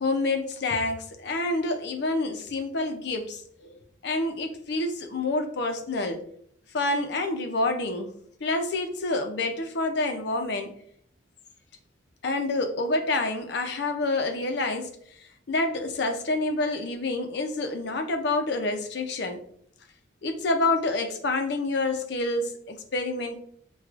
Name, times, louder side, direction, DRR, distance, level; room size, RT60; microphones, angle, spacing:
voice 1, 0.0-6.2 6.7-8.1 8.4-10.7 12.2-14.9 15.2-19.4 20.2-23.4, left 2 dB, 55° left, 5 dB, 0.5 m, -28 dB
4.5 x 2.3 x 2.4 m, 0.64 s
head